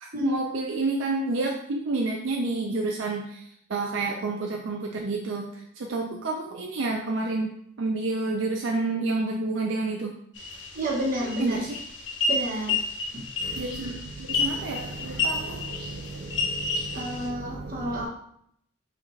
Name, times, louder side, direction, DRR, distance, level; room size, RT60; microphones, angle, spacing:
voice 1, 0.0-3.4 3.7-5.5 5.8-10.1 11.4-11.7 13.4-18.1, right 3 dB, 75° right, 0.4 m, -30 dB
sound 1, 10.3-17.3, left 3 dB, 65° left, 0.7 m, -31 dB
voice 2, 10.7-11.6 12.3-12.8 13.1-13.3 16.9-18.1, equal, 45° right, 1.1 m, -30 dB
5.7 x 2.5 x 3.1 m
head